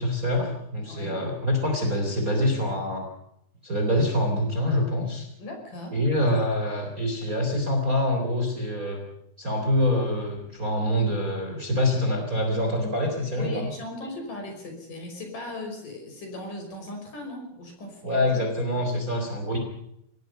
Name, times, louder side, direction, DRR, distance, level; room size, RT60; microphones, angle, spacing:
voice 1, 0.0-3.1 3.6-5.3 5.9-9.0 9.4-13.7 18.0-19.6, left 1 dB, 20° right, 3 dB, 3.7 m, -25 dB
voice 2, 0.9-1.2 5.4-6.0 13.4-18.4 18.7-18.9 19.2-19.3, left 2 dB, 50° left, 4 dB, 6.9 m, -38 dB
25.0 x 19.0 x 5.6 m, 0.75 s
omnidirectional pair, 5.0 m